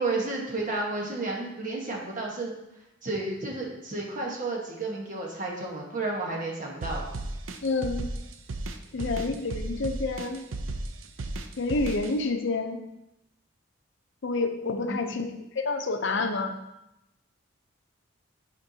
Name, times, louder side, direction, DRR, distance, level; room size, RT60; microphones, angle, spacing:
voice 1, 0.0-2.5 3.0-7.0 14.9-15.0, right 2 dB, 40° right, -2 dB, 1.3 m, -31 dB
sound 1, 6.8-12.1, right 2 dB, 90° right, 0.5 m, -34 dB
voice 2, 7.6-8.1 8.9-10.4 11.6-12.8 14.2-15.3 15.6-16.5, left 3 dB, 65° left, 6 dB, 0.6 m, -28 dB
8.9 x 4.4 x 2.8 m, 0.88 s
head